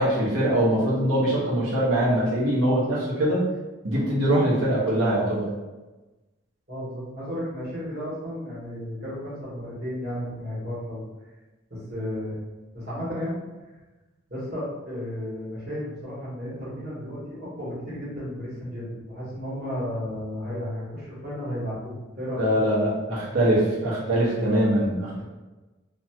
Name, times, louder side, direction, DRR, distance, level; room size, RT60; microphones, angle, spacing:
voice 1, 0.0-3.5 3.8-5.5 22.3-25.2, right 1 dB, 75° right, -7 dB, 1.1 m, -23 dB
voice 2, 6.7-11.0 11.7-12.4 12.7-13.4 14.3-22.5 25.1-25.2, equal, 45° right, -9 dB, 1.2 m, -33 dB
2.6 x 2.3 x 2.8 m, 1.1 s
head